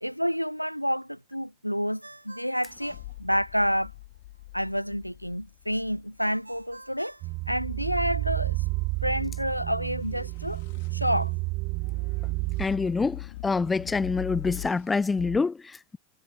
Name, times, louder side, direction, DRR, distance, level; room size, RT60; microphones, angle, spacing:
voice 1, 0.0-3.9 4.5-7.1 7.5-8.6 9.0-10.6 10.9-11.3, equal, 90° left, 1.4 m, -29 dB
Ringtone, 2.0-4.0 6.2-8.1, right 2 dB, 85° right, 7.7 m, -49 dB
sound 1, 2.7-6.8 10.1-15.4, left 18 dB, 50° left, 3.5 m, -43 dB
sound 2, 7.2-12.7, right 25 dB, 40° right, 0.7 m, -30 dB
voice 2, 12.6-16.0, left 4 dB, 10° left, 0.8 m, -26 dB
figure-of-eight pair, 90°, 0 cm